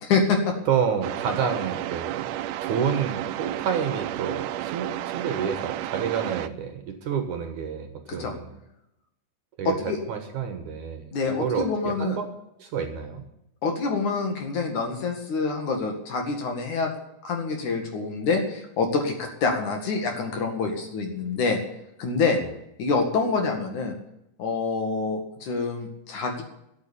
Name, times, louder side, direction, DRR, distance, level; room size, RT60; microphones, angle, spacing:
voice 1, 0.0-0.5 8.1-8.3 9.6-10.0 11.1-12.2 13.6-16.9 17.2-21.6 22.0-22.4 22.8-23.9 24.4-26.4, left 4 dB, 55° left, 3 dB, 3.2 m, -26 dB
voice 2, 0.7-2.3 2.6-8.5 9.6-12.3 12.6-13.2, right 7 dB, 60° right, 6 dB, 2.4 m, -29 dB
sound 1, 1.0-6.5, right 13 dB, 85° right, 1.9 m, -32 dB
13.5 x 8.8 x 8.5 m, 0.80 s
omnidirectional pair, 4.5 m